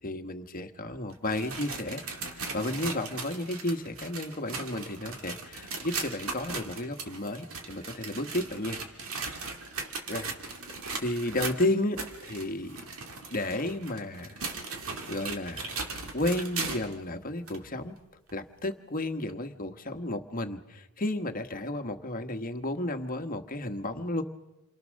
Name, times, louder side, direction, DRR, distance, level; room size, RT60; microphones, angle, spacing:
voice 1, 0.0-2.0 2.3-8.8 10.1-10.3 10.7-12.8 13.3-14.4 15.1-15.8 16.1-18.0 18.3-24.2, left 1 dB, 40° left, 6 dB, 1.4 m, -32 dB
sound 1, 1.1-17.0 17.5-17.6 18.3-18.4 19.3-19.4, right 4 dB, 65° right, 2.4 m, -38 dB
28.5 x 23.5 x 6.5 m, 1.0 s
head